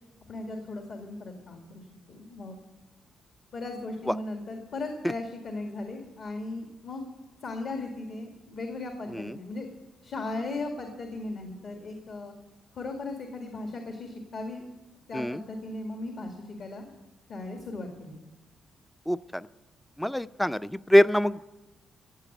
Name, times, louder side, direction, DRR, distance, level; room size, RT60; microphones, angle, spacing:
voice 1, 0.3-2.6 3.5-7.0 7.4-9.7 10.0-12.3 12.7-14.6 15.1-16.9 17.3-18.2, left 2 dB, 55° left, 3 dB, 2.1 m, -37 dB
voice 2, 19.1-19.5 20.0-21.4, equal, 5° left, 15 dB, 0.4 m, -24 dB
16.0 x 8.3 x 9.2 m, 1.1 s
cardioid pair, 115°, 0 cm